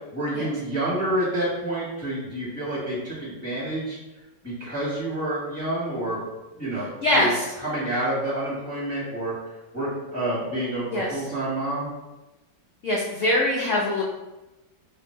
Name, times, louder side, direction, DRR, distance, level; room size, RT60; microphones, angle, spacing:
voice 1, 0.1-4.0 4.4-6.2 6.6-6.9 7.1-7.3 7.6-11.9, right 1 dB, 10° left, -9 dB, 1.0 m, -28 dB
voice 2, 7.0-7.4 10.9-11.1 12.8-14.0, left 1 dB, 80° left, -3 dB, 0.6 m, -22 dB
2.7 x 2.6 x 4.2 m, 1.1 s
omnidirectional pair, 1.9 m